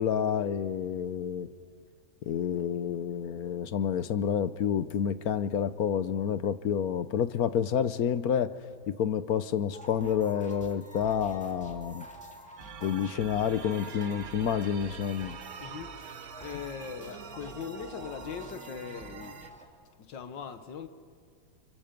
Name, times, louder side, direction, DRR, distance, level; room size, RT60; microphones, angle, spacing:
voice 1, 0.0-1.5 2.2-8.5 8.9-12.1 12.8-15.4, left 8 dB, 60° left, 1.2 m, -29 dB
sound 1, 9.7-19.7, equal, 5° left, 2.5 m, -48 dB
sound 2, 12.6-19.5, right 8 dB, 60° right, 1.3 m, -46 dB
voice 2, 15.6-16.1 16.4-19.6 20.0-20.9, left 7 dB, 85° left, 1.9 m, -40 dB
29.5 x 29.5 x 5.3 m
omnidirectional pair, 1.9 m